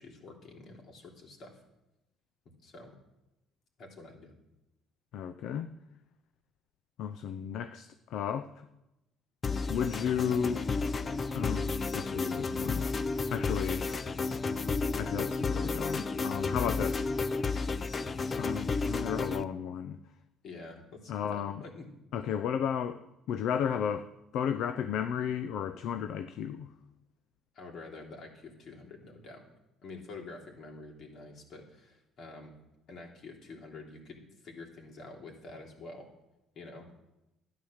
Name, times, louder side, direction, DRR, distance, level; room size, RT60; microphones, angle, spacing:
voice 1, 0.0-1.6 2.6-2.9 3.8-4.3 20.4-21.9 27.5-29.5 29.8-32.5 32.9-36.1 36.5-36.9, left 3 dB, 55° left, 3.2 m, -47 dB
voice 2, 5.1-5.7 7.0-8.5 9.7-10.6 11.3-12.9 13.3-13.9 15.0-17.1 18.4-20.0 21.1-21.6 22.1-23.0 23.3-24.1 24.3-26.7, left 8 dB, 70° left, 0.6 m, -33 dB
sound 1, 9.4-19.4, left 4 dB, 30° left, 0.6 m, -32 dB
12.5 x 9.8 x 6.5 m
cardioid pair, 110°, 0 cm